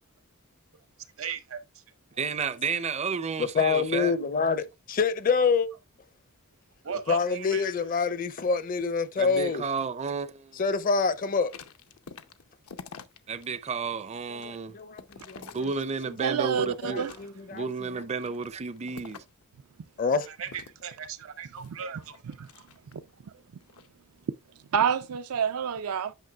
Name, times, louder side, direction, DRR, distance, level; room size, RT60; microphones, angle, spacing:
voice 1, 1.2-1.8 6.8-7.6 20.3-22.1 23.3-23.4, right 7 dB, 65° right, 0.9 m, -37 dB
voice 2, 2.2-4.1 9.2-10.6 13.3-14.8 15.3-17.1 17.5-19.2, right 5 dB, 30° right, 0.5 m, -32 dB
voice 3, 3.4-5.7 7.1-9.7 10.6-11.5 14.3-15.6 16.6-17.7 20.0-20.3, left 5 dB, 40° left, 0.5 m, -26 dB
sound 1, 11.3-13.5 13.9-16.3 16.7-17.6 18.1-19.4 20.4-23.1 23.6-23.9, left 5 dB, 80° left, 0.7 m, -48 dB
voice 4, 16.2-17.1 21.6-21.8 22.4-22.5 22.9-23.0 24.7-26.1, right 7 dB, 90° right, 0.5 m, -28 dB
9.1 x 5.8 x 2.3 m
head